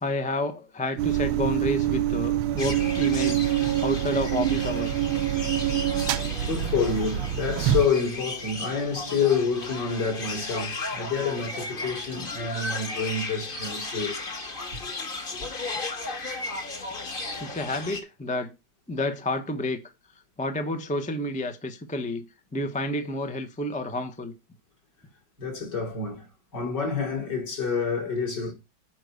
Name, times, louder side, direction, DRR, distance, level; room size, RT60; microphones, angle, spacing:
voice 1, 0.0-3.5 3.8-5.1 17.4-18.5 18.9-19.8 20.4-22.2 22.5-24.3, left 1 dB, 10° left, 0.5 m, -30 dB
sound 1, 1.0-7.9, right 12 dB, 85° right, 1.5 m, -26 dB
sound 2, 2.6-18.0, left 3 dB, 30° left, 1.3 m, -35 dB
voice 2, 6.4-14.2 14.7-14.9 25.4-26.3 26.5-28.5, left 5 dB, 55° left, 4.0 m, -28 dB
7.6 x 5.1 x 6.4 m
omnidirectional pair, 2.2 m